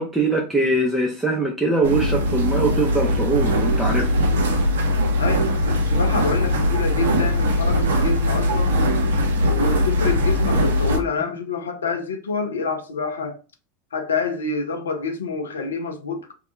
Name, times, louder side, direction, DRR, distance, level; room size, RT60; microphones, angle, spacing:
voice 1, 0.0-4.2, right 2 dB, 10° right, 0.5 m, -22 dB
sound 1, 1.8-11.0, left 1 dB, 70° right, 0.5 m, -20 dB
voice 2, 5.2-8.8 9.4-13.4 13.9-16.3, left 4 dB, 80° left, 0.4 m, -27 dB
2.2 x 2.1 x 2.9 m
figure-of-eight pair, 80°, 0 cm